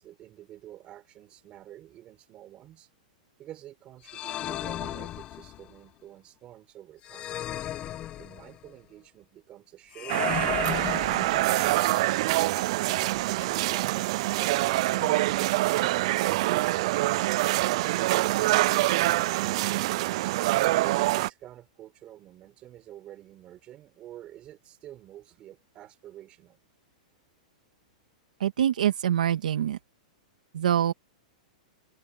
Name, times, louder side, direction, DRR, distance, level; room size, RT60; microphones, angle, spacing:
voice 1, 0.0-2.9 3.4-7.3 8.2-12.6 20.7-26.6, right 13 dB, 25° right, 5.1 m, -48 dB
sound 1, 4.1-5.8 7.0-8.7 9.9-11.8, left 12 dB, 25° left, 1.1 m, -35 dB
sound 2, 10.1-21.3, right 18 dB, 50° right, 0.4 m, -25 dB
sound 3, 11.3-16.6, left 23 dB, 40° left, 3.3 m, -52 dB
voice 2, 28.4-29.8 30.5-30.9, right 10 dB, 85° right, 1.9 m, -25 dB
open air
hypercardioid pair, 155°, 4 cm